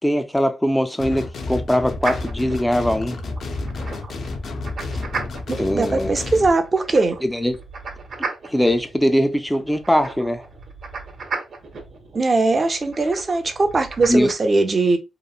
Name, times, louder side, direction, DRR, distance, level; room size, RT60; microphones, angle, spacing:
voice 1, 0.0-3.2 5.6-6.1 7.2-7.6 8.5-10.5 14.1-14.3, equal, 5° left, 0.3 m, -21 dB
sound 1, 1.0-6.5, left 3 dB, 65° left, 0.5 m, -30 dB
sound 2, 2.0-14.3, right 4 dB, 60° right, 0.9 m, -35 dB
voice 2, 5.5-7.2 12.1-15.0, right 3 dB, 40° right, 0.6 m, -20 dB
2.9 x 2.0 x 2.3 m
cardioid pair, 80°, 0 cm